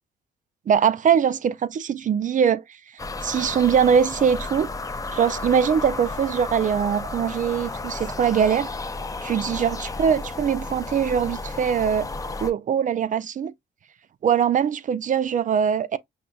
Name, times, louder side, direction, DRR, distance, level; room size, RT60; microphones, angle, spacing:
voice 1, 0.7-2.6 3.2-4.7 5.1-8.7 9.2-12.1 12.4-13.5 14.2-16.0, right 7 dB, 40° right, 0.4 m, -22 dB
sound 1, 3.0-12.5, left 3 dB, 15° left, 0.5 m, -33 dB
5.8 x 2.5 x 2.3 m
cardioid pair, 90°, 20 cm